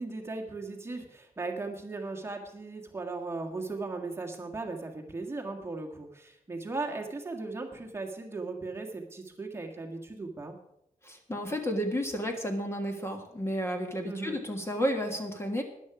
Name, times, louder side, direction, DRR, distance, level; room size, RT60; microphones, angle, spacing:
voice 1, 0.0-10.6 14.0-14.4, right 3 dB, 20° right, 1 dB, 1.6 m, -37 dB
voice 2, 11.0-15.6, equal, 20° left, 4 dB, 1.5 m, -32 dB
14.0 x 10.5 x 4.9 m, 0.79 s
wide cardioid pair, 155°, 14 cm